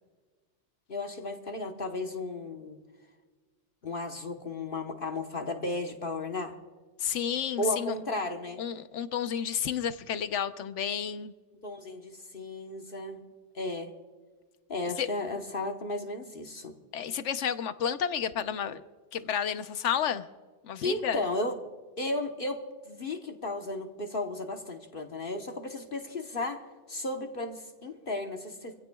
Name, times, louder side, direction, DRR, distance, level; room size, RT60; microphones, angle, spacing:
voice 1, 0.9-2.8 3.8-6.5 7.6-8.6 11.6-13.2 13.5-13.9 14.7-16.7 20.8-21.6 22.0-26.6 26.9-28.8, left 2 dB, 50° left, 4 dB, 1.3 m, -34 dB
voice 2, 7.0-8.0 8.6-11.3 15.0-15.1 16.9-18.8 19.1-20.3 20.6-21.2, left 8 dB, 85° left, 11 dB, 1.1 m, -31 dB
25.5 x 16.0 x 2.3 m, 1.4 s
omnidirectional pair, 1.2 m